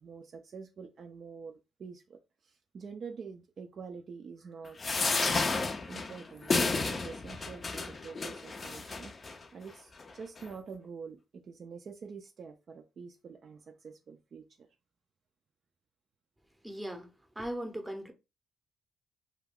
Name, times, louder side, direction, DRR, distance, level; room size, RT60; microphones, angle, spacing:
voice 1, 0.0-14.7, right 5 dB, 50° right, 0.3 m, -47 dB
sound 1, 4.8-9.4 10.0-10.1 10.4-10.5, left 3 dB, 35° left, 0.4 m, -32 dB
voice 2, 16.6-17.1 17.4-18.1, right 1 dB, 10° right, 0.6 m, -38 dB
2.3 x 2.2 x 3.4 m
cardioid pair, 90°, 0 cm